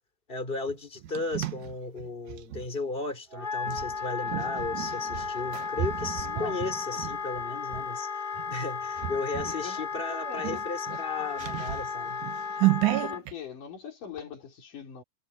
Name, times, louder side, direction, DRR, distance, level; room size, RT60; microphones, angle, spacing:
voice 1, 0.3-12.2, left 3 dB, 15° left, 4.3 m, -35 dB
sound 1, 0.7-2.7 3.6-7.9 8.4-8.6 9.0-9.6 10.0-10.1 10.4-13.3, right 16 dB, 75° right, 2.2 m, -32 dB
Wind instrument woodwind instrument, 3.3-13.2, left 5 dB, 15° right, 4.1 m, -34 dB
voice 2, 6.2-6.6 6.9-7.0 9.4-9.8 10.1-10.6 10.9-11.0 12.9-15.0, left 6 dB, 80° left, 5.8 m, -41 dB
omnidirectional pair, 3.7 m